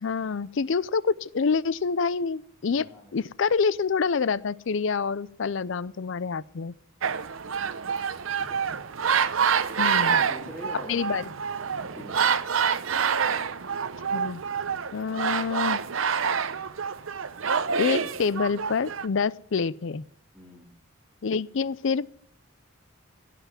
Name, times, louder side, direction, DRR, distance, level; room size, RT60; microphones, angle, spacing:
voice 1, 0.0-2.9 3.1-6.7 9.8-10.2 10.9-11.2 14.1-14.4 14.9-15.8 17.7-20.0 21.2-22.1, left 5 dB, 60° left, 0.5 m, -27 dB
voice 2, 2.7-3.2 8.4-8.6 9.8-11.2 11.8-12.4 20.3-20.7, equal, 5° right, 2.7 m, -44 dB
sound 1, 7.0-19.1, right 6 dB, 70° right, 0.7 m, -27 dB
16.5 x 5.8 x 9.6 m
head